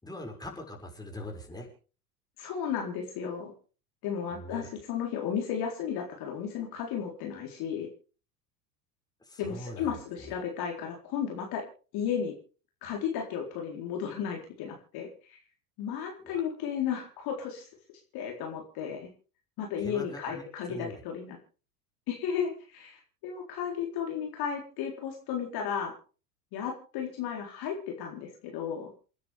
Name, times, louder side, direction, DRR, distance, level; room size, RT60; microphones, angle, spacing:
voice 1, 0.0-1.7 4.3-4.7 9.2-10.3 16.2-16.4 19.8-20.4 20.7-20.9, left 1 dB, 10° left, 1 dB, 6.6 m, -42 dB
voice 2, 2.4-3.5 4.0-7.9 9.4-11.6 11.9-12.3 12.8-15.4 15.8-17.7 18.1-19.1 19.6-21.4 22.1-25.9 26.5-28.9, left 8 dB, 50° left, 1 dB, 4.2 m, -34 dB
28.5 x 10.5 x 3.6 m, 0.38 s
hypercardioid pair, 80°, 47 cm